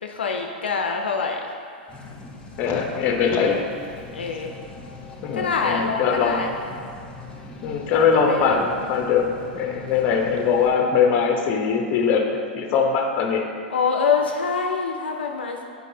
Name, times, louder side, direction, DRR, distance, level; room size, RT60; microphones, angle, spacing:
voice 1, 0.0-1.5 4.1-4.5 5.3-6.5 8.0-8.7 13.7-15.6, left 5 dB, 85° left, 2 dB, 0.4 m, -25 dB
sound 1, 1.9-10.7, left 3 dB, 15° left, 1.0 m, -41 dB
voice 2, 2.6-3.7 5.2-6.5 7.6-13.5, left 6 dB, 40° left, 3 dB, 0.7 m, -21 dB
8.2 x 4.6 x 2.7 m, 2.2 s
hypercardioid pair, 105°, 5 cm